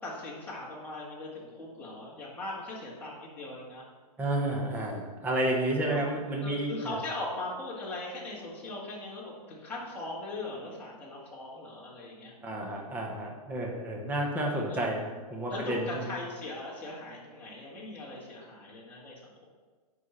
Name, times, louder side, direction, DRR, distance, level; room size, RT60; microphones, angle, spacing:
voice 1, 0.0-3.8 5.9-6.0 6.4-12.3 14.5-14.8 15.5-19.4, left 2 dB, 10° left, -7 dB, 2.2 m, -39 dB
voice 2, 4.2-7.0 12.4-15.0 15.3-16.1, right 1 dB, 10° right, -1 dB, 1.0 m, -31 dB
8.1 x 5.7 x 6.2 m, 1.4 s
hypercardioid pair, 160°, 20 cm